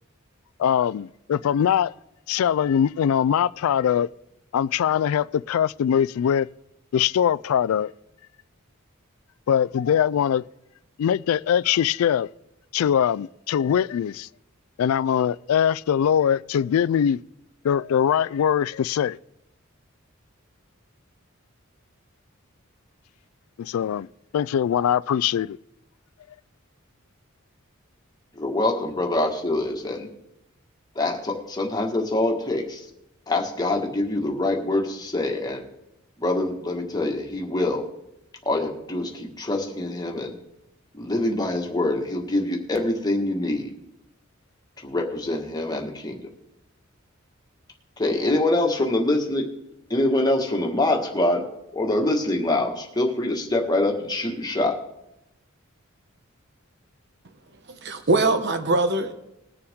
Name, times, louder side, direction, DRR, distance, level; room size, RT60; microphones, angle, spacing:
voice 1, 0.6-1.9 2.3-4.1 4.5-6.5 6.9-7.9 9.5-10.4 11.0-12.3 12.7-14.3 14.8-17.2 17.6-19.2 23.6-24.1 24.3-25.6, left 8 dB, 85° left, 0.3 m, -22 dB
voice 2, 28.3-30.1 30.9-32.8 33.3-35.7 36.2-37.8 38.4-40.3 40.9-43.7 44.8-46.2 48.0-49.5 49.9-51.4 51.7-54.8, left 2 dB, 20° left, 1.5 m, -25 dB
voice 3, 57.7-59.1, right 2 dB, 55° right, 0.9 m, -22 dB
20.5 x 6.9 x 3.6 m
head